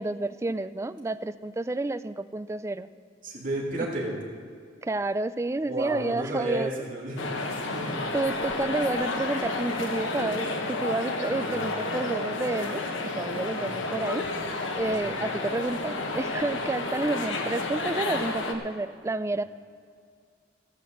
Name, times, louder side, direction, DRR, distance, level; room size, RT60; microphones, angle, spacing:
voice 1, 0.0-2.9 4.8-6.7 8.1-12.8 13.2-14.3 14.8-19.4, right 2 dB, 15° right, 13 dB, 0.3 m, -30 dB
voice 2, 3.2-4.2 5.7-8.1 11.4-11.6 13.6-13.9 14.8-14.9, right 1 dB, 45° right, -5 dB, 2.9 m, -32 dB
sound 1, 7.2-18.5, left 2 dB, 85° left, 1.2 m, -31 dB
15.5 x 6.0 x 7.8 m, 2.2 s
head